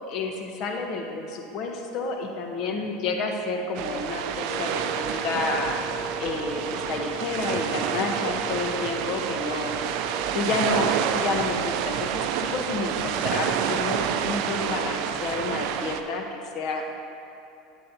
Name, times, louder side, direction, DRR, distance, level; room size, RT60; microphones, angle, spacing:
voice 1, 0.1-5.8 6.2-9.7 10.3-17.0, left 3 dB, 55° left, 4 dB, 1.0 m, -30 dB
sound 1, 3.7-16.0, right 8 dB, 65° right, 0.4 m, -28 dB
Wind instrument woodwind instrument, 4.5-10.3, equal, 20° left, 0.6 m, -38 dB
9.8 x 8.2 x 2.8 m, 2.8 s
hypercardioid pair, 95°, 0 cm